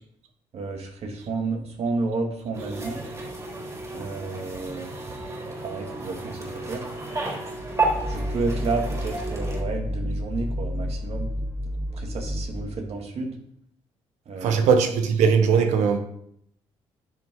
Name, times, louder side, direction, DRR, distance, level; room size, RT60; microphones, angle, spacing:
voice 1, 0.5-3.0 3.9-4.9 5.5-6.8 8.1-11.3 11.9-13.3 14.3-14.7, right 3 dB, 60° right, 2 dB, 2.3 m, -31 dB
sound 1, 2.5-9.6, right 2 dB, 25° right, 3.9 m, -32 dB
sound 2, 7.5-13.0, equal, 5° left, 0.9 m, -31 dB
voice 2, 14.4-16.0, right 6 dB, 85° right, 6 dB, 1.4 m, -20 dB
10.0 x 6.4 x 3.9 m, 0.71 s
cardioid pair, 80°, 12 cm